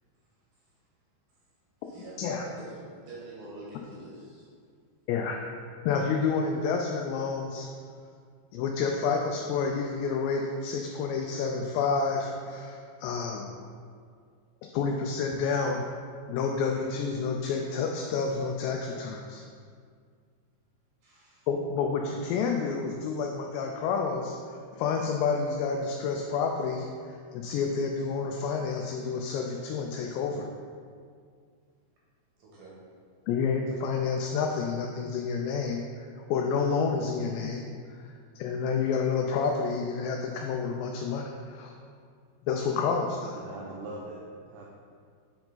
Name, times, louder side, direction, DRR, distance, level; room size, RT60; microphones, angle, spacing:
voice 1, 1.8-4.5 21.0-21.5 32.4-32.8, right 2 dB, 60° right, -7 dB, 2.5 m, -46 dB
voice 2, 5.9-7.7 8.5-13.5 14.7-15.9 16.3-19.4 21.5-30.5 33.3-41.7 42.5-43.4, left 5 dB, 85° left, 2 dB, 2.5 m, -29 dB
voice 3, 43.3-44.7, right 2 dB, 85° right, -3 dB, 2.3 m, -41 dB
8.5 x 4.7 x 3.9 m, 2.1 s
omnidirectional pair, 5.3 m